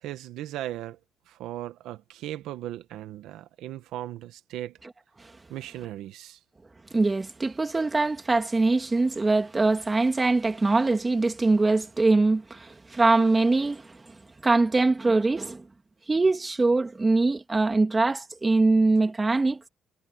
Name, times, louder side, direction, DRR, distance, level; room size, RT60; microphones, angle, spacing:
voice 1, 0.0-1.0 1.3-4.8 5.5-6.4, right 13 dB, 90° right, 1.2 m, -37 dB
voice 2, 6.9-14.2 14.4-15.6 16.1-19.6, right 3 dB, 25° right, 2.7 m, -23 dB
cardioid pair, 90°, 0 cm